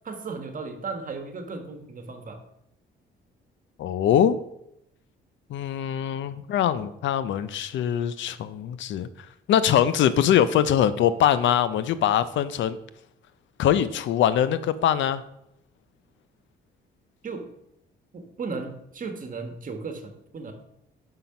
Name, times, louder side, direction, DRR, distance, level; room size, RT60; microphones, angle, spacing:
voice 1, 0.0-2.4 17.2-17.5 18.1-20.5, right 4 dB, 40° right, 6 dB, 1.3 m, -35 dB
voice 2, 3.8-4.4 5.5-9.1 9.5-12.8 13.6-15.2, left 10 dB, 70° left, 15 dB, 0.5 m, -22 dB
5.8 x 5.1 x 5.8 m, 0.78 s
cardioid pair, 90°, 20 cm